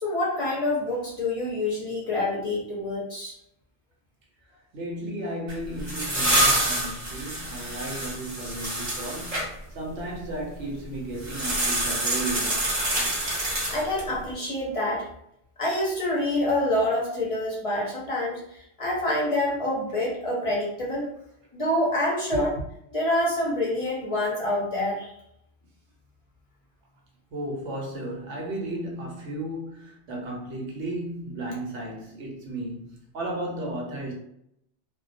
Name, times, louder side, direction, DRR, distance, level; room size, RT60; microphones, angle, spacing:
voice 1, 0.0-3.3 13.7-15.1 15.6-21.0 21.5-22.5 22.9-25.1, left 1 dB, 40° left, 0.5 m, -27 dB
voice 2, 4.7-12.8 22.3-22.4 27.3-34.1, right 1 dB, 85° right, 1.0 m, -34 dB
sound 1, 5.5-9.5 11.2-14.1, right 1 dB, 35° right, 0.8 m, -27 dB
2.2 x 2.2 x 2.5 m
omnidirectional pair, 1.2 m